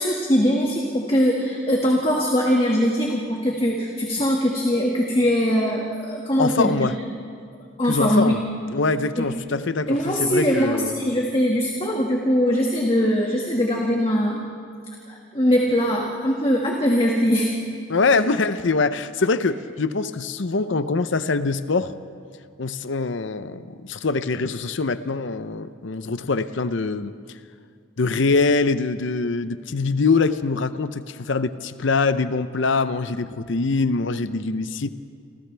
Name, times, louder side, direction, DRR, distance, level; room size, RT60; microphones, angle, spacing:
voice 1, 0.0-6.9 7.8-8.3 9.2-9.3 9.9-14.4 15.1-17.5, equal, 25° left, -2 dB, 1.9 m, -21 dB
voice 2, 6.4-7.0 7.9-8.4 8.7-10.9 17.9-21.9 22.6-27.1 28.0-34.9, left 3 dB, 65° left, 12 dB, 0.7 m, -23 dB
28.5 x 28.0 x 3.4 m, 2.2 s
head